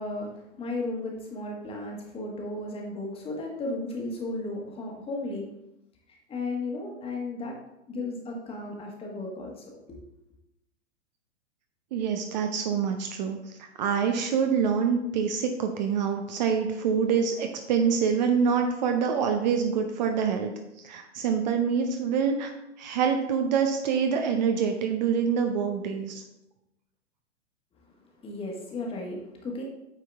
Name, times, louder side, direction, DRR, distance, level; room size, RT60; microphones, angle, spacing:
voice 1, 0.0-5.5 6.3-7.6 7.9-10.0 28.2-29.6, left 2 dB, 15° left, 0 dB, 1.4 m, -34 dB
voice 2, 11.9-20.5 20.8-22.5 22.8-26.2, right 6 dB, 40° right, 5 dB, 0.7 m, -26 dB
8.9 x 4.5 x 3.5 m, 0.86 s
figure-of-eight pair, 105°, 36 cm